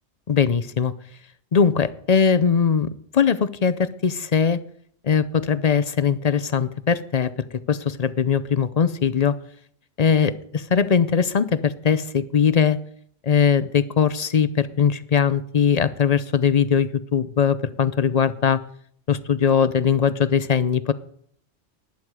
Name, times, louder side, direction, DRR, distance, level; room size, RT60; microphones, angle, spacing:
voice 1, 0.3-0.9 1.5-4.6 5.0-7.3 7.7-9.3 10.0-12.8 13.2-18.6 19.1-20.9, left 6 dB, 45° left, 14 dB, 0.5 m, -20 dB
19.0 x 9.3 x 4.8 m, 0.66 s
omnidirectional pair, 1.3 m